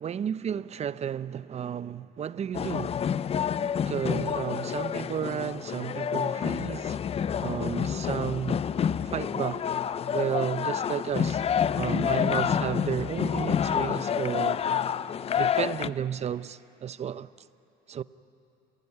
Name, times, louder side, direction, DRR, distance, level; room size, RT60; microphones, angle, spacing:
voice 1, 0.0-3.0 3.9-7.0 7.4-8.6 9.1-9.7 10.1-11.4 11.8-14.6 15.3-17.3 17.9-18.0, right 9 dB, 40° right, 0.6 m, -32 dB
sound 1, 2.5-15.9, left 8 dB, 35° left, 0.5 m, -28 dB
27.5 x 16.5 x 9.8 m
cardioid pair, 110°, 17 cm